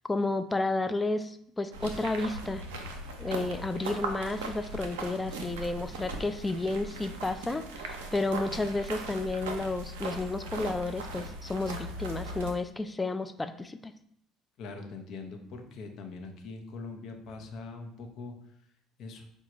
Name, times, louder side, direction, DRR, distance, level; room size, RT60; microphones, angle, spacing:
voice 1, 0.1-2.7 3.2-13.9, left 2 dB, 15° left, 10 dB, 0.3 m, -32 dB
sound 1, 1.7-12.5, right 2 dB, 75° right, 0.5 m, -39 dB
voice 2, 14.6-18.6 19.0-19.3, left 3 dB, 55° left, 4 dB, 0.7 m, -42 dB
4.7 x 2.3 x 3.0 m, 0.69 s
hypercardioid pair, 60°, 0 cm